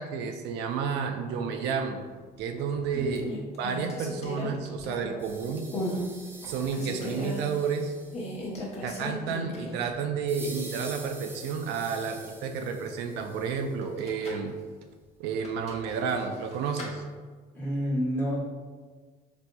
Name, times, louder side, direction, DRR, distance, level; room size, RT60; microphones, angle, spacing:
voice 1, 0.0-2.0 2.4-3.3 3.6-5.7 6.5-7.9 8.8-14.5 15.2-17.0, right 6 dB, 85° right, 5 dB, 0.4 m, -31 dB
sound 1, 2.4-2.8 3.1-5.3 5.7-6.0 6.4-7.4 8.1-9.9 10.2-10.3 13.8-14.5 15.4-16.9, left 1 dB, 40° left, 0.8 m, -36 dB
sound 2, 5.2-8.5 10.3-13.8, right 2 dB, 15° right, 0.4 m, -46 dB
voice 2, 17.5-18.5, equal, 10° left, -6 dB, 1.0 m, -29 dB
4.1 x 2.6 x 2.2 m, 1.5 s
cardioid pair, 110°, 17 cm